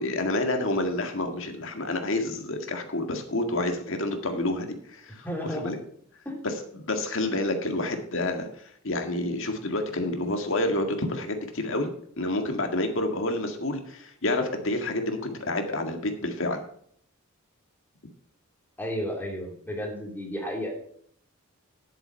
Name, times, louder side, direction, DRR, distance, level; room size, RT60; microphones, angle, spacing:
voice 1, 0.0-5.8 6.4-11.9 12.2-16.6, left 2 dB, 60° left, 5 dB, 1.9 m, -29 dB
voice 2, 5.2-5.7 6.2-6.5 18.8-20.7, equal, 10° left, 0 dB, 2.8 m, -33 dB
11.0 x 7.8 x 5.6 m, 0.63 s
head